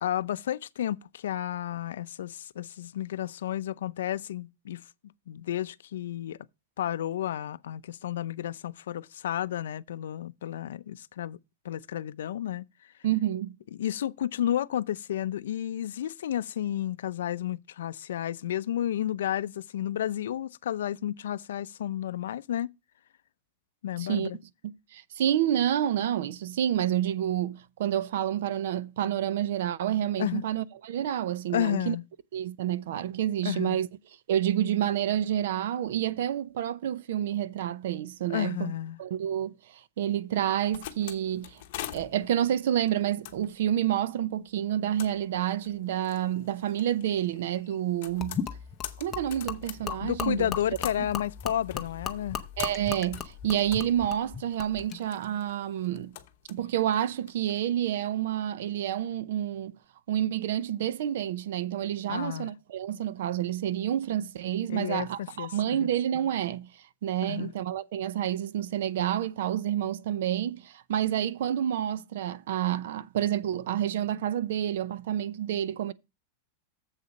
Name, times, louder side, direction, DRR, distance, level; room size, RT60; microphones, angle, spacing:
voice 1, 0.0-4.8 5.3-6.4 6.8-11.4 11.6-12.7 13.7-22.7 23.8-24.4 30.2-30.4 31.5-32.0 33.4-33.8 38.3-39.0 50.0-52.4 62.1-62.5 64.7-65.9 67.3-67.5, left 11 dB, 80° left, 0.4 m, -32 dB
voice 2, 13.0-13.5 24.0-24.3 24.9-32.0 32.3-33.9 34.3-38.7 39.0-41.6 41.9-48.4 49.0-50.5 52.6-56.1 56.5-59.7 60.1-66.7 67.0-75.9, right 11 dB, 60° right, 0.6 m, -29 dB
sound 1, 40.4-57.6, left 13 dB, 45° left, 0.9 m, -46 dB
Gurgling / Liquid, 48.2-55.0, left 7 dB, 15° left, 0.6 m, -37 dB
7.3 x 6.7 x 5.2 m
supercardioid pair, 180°, 0 cm